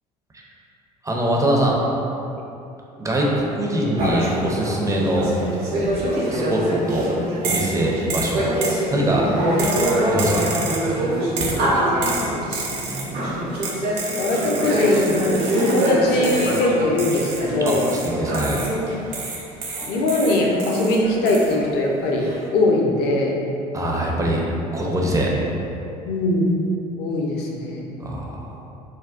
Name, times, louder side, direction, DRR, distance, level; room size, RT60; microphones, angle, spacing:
voice 1, 1.0-1.8 3.0-5.3 6.3-7.1 7.4-8.5 8.9-9.3 10.0-10.4 17.6-18.7 23.7-24.5 24.7-25.3 28.0-28.5, right 1 dB, 15° right, -2 dB, 0.5 m, -23 dB
sound 1, 4.0-18.9 19.5-19.6 19.8-22.5, right 1 dB, 60° right, 0.9 m, -25 dB
sound 2, 7.4-7.8 8.1-8.8 9.6-10.9 11.4-11.7 12.0-13.1 13.6-16.0 16.2-16.7 17.0-18.8 19.1-21.0 21.3-21.5, right 4 dB, 75° right, 0.5 m, -30 dB
voice 2, 12.2-13.4 14.2-17.9 19.9-23.4 26.0-26.4 27.0-28.1, left 2 dB, 55° left, -1 dB, 0.5 m, -22 dB
3.5 x 2.2 x 2.4 m, 2.8 s
figure-of-eight pair, 60°, 21 cm